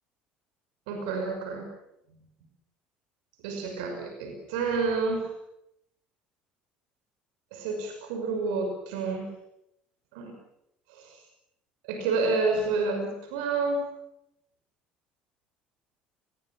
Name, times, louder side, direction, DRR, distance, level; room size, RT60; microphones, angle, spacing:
voice 1, 0.9-1.7 3.4-5.3 7.5-9.3 10.1-10.3 10.9-11.2 11.8-13.9, right 4 dB, 70° right, 4 dB, 5.9 m, -29 dB
30.0 x 21.5 x 7.4 m, 0.81 s
figure-of-eight pair, 60°, 5 cm